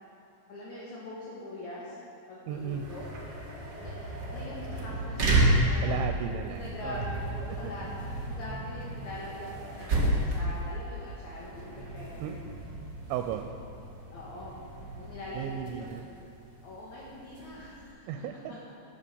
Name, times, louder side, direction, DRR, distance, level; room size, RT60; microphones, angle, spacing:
voice 1, 0.5-2.0 2.3-3.1 3.5-3.9 4.3-6.0 6.5-7.9 8.2-12.4 14.1-14.6 15.0-16.0 16.6-18.1 18.5-18.7, left 1 dB, 60° left, -6 dB, 2.1 m, -43 dB
sound 1, 2.5-17.9, right 1 dB, 60° right, 1.0 m, -32 dB
voice 2, 2.5-2.9 5.8-7.1 7.6-7.7 12.2-12.4 13.1-13.4 15.3-16.0 18.1-18.5, right 9 dB, 90° right, 5 dB, 2.9 m, -35 dB
11.5 x 7.2 x 6.9 m, 2.6 s
omnidirectional pair, 5.2 m